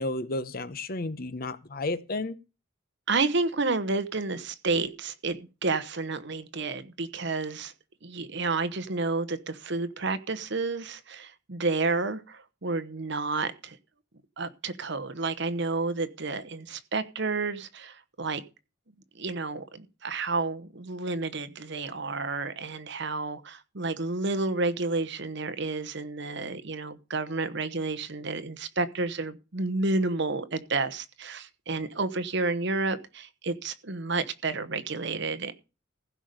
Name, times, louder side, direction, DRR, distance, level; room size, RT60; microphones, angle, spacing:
voice 1, 0.0-2.4, left 2 dB, 45° left, 0.9 m, -32 dB
voice 2, 3.1-7.7 8.0-13.8 14.4-18.4 19.1-35.5, right 3 dB, 60° right, 1.1 m, -30 dB
15.5 x 5.3 x 6.6 m
head